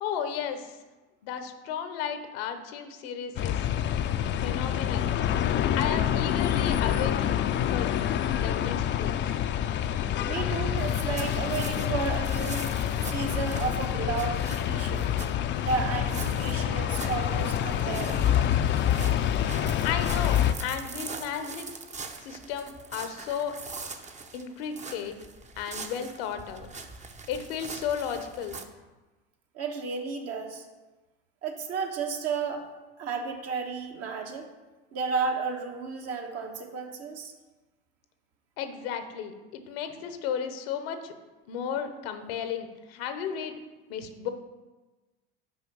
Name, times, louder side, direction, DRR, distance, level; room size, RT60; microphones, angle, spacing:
voice 1, 0.0-0.8 1.2-3.7 4.4-5.1 5.8-7.4 7.7-7.9 8.3-9.1 19.8-21.7 22.2-23.5 24.3-25.2 25.6-26.7 27.3-28.6 38.6-41.1 41.5-43.6 43.9-44.3, left 8 dB, 80° left, 8 dB, 0.9 m, -34 dB
sound 1, 3.4-20.5, left 10 dB, 40° left, 0.4 m, -27 dB
voice 2, 10.3-12.7 13.1-15.1 15.5-18.4 29.5-30.7 31.4-32.6 33.0-34.5 34.9-37.3, right 5 dB, 55° right, 3 dB, 1.3 m, -32 dB
sound 2, 10.8-28.6, right 4 dB, 25° right, 0.7 m, -43 dB
6.2 x 4.5 x 6.2 m, 1.2 s
hypercardioid pair, 85°, 30 cm